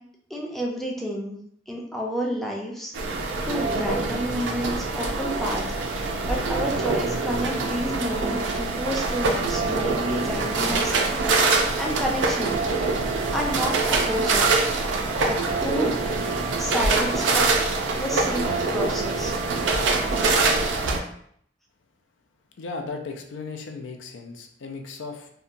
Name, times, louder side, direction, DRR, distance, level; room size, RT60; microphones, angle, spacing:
voice 1, 0.3-1.4 1.7-2.9 3.5-5.6 6.2-10.9 11.8-12.6 13.3-14.5 15.3-16.0 16.6-19.3, equal, ahead, -2 dB, 0.4 m, -30 dB
sound 1, 2.9-21.0, right 3 dB, 85° right, 0.4 m, -24 dB
voice 2, 22.5-25.3, left 4 dB, 90° left, 3 dB, 0.4 m, -36 dB
2.8 x 2.2 x 2.5 m, 0.65 s
head